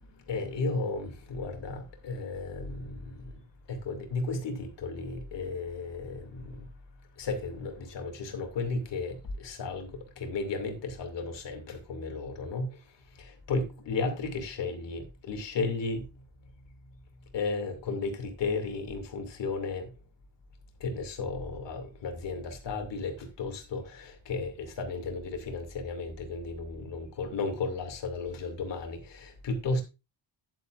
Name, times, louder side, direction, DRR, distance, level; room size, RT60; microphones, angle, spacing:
voice 1, 0.2-6.7 7.2-16.2 17.3-19.9 20.8-29.8, left 3 dB, 70° left, 2.5 m, -34 dB
10.5 x 9.6 x 2.5 m
wide cardioid pair, 155°, 45 cm